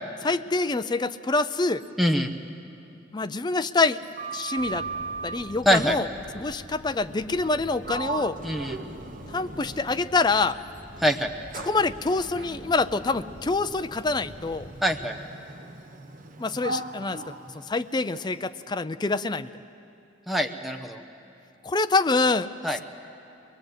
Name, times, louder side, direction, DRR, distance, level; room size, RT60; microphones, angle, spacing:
voice 1, 0.2-1.8 3.1-4.0 4.3-4.9 5.2-6.1 6.3-8.4 9.3-10.6 11.6-14.7 16.4-17.3 17.7-19.5 21.6-22.5, left 3 dB, 20° left, 11 dB, 0.5 m, -26 dB
voice 2, 2.0-2.3 5.6-6.0 8.4-8.8 11.0-11.3 14.8-15.2 20.3-21.0 22.6-22.8, equal, ahead, 3 dB, 1.0 m, -24 dB
Sliding door, 3.9-5.5 7.4-7.6 7.8-10.3 10.9-18.4, right 3 dB, 45° right, 1.0 m, -38 dB
sound 1, 4.5-15.0, equal, 60° right, 3.1 m, -45 dB
23.0 x 21.0 x 8.1 m, 2.7 s
head